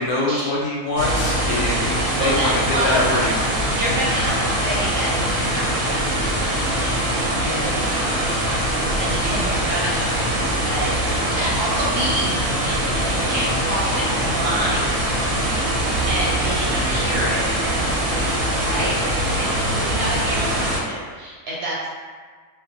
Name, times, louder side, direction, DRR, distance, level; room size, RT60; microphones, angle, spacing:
voice 1, 0.0-3.5 9.4-9.5 15.3-15.6 19.4-19.7, left 2 dB, 70° left, -4 dB, 0.9 m, -24 dB
sound 1, 1.0-20.8, right 1 dB, 85° right, 1.0 m, -22 dB
voice 2, 2.2-3.0 3.7-8.6 9.0-10.9 11.3-12.8 13.1-15.1 16.1-19.1 19.4-21.9, right 1 dB, 60° right, -6 dB, 0.7 m, -28 dB
2.5 x 2.1 x 2.5 m, 1.5 s
omnidirectional pair, 1.3 m